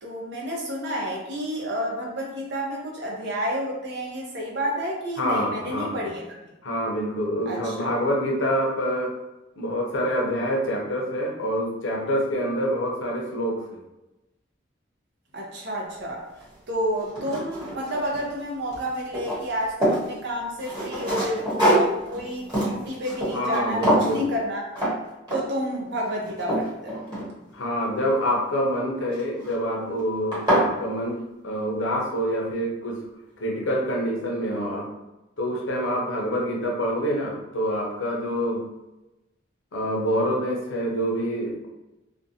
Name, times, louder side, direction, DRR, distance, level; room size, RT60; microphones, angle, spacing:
voice 1, 0.0-6.2 7.5-7.9 15.3-16.3 16.7-24.6 25.3-27.1, equal, 60° right, -2 dB, 0.7 m, -30 dB
voice 2, 5.2-6.1 6.6-9.2 9.6-13.8 23.3-24.3 27.5-33.0 33.4-34.9 35.4-38.7 39.7-41.7, equal, 85° left, -1 dB, 0.6 m, -26 dB
sound 1, 16.4-16.5 17.0-18.4 18.7-20.1 20.6-23.6 23.8-24.2 24.8-25.0 25.3-25.6 26.1-27.6 29.1-29.5 30.0-30.1 30.3-30.7, right 1 dB, 20° right, 1.1 m, -25 dB
2.5 x 2.2 x 2.7 m, 0.97 s
head